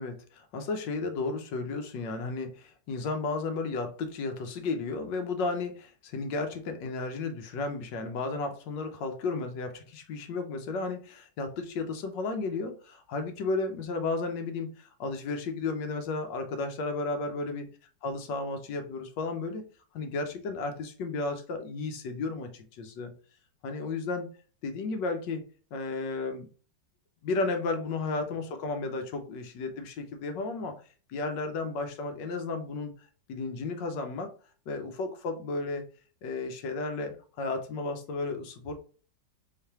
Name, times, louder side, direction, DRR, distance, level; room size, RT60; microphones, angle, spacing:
voice 1, 0.0-17.7 18.0-19.6 19.9-23.1 23.6-24.3 24.6-25.4 25.7-26.5 27.2-30.8 31.1-32.9 33.3-34.3 34.7-35.9 36.2-38.7, left 3 dB, 75° left, 6 dB, 1.4 m, -33 dB
3.9 x 3.2 x 2.8 m, 0.39 s
omnidirectional pair, 2.0 m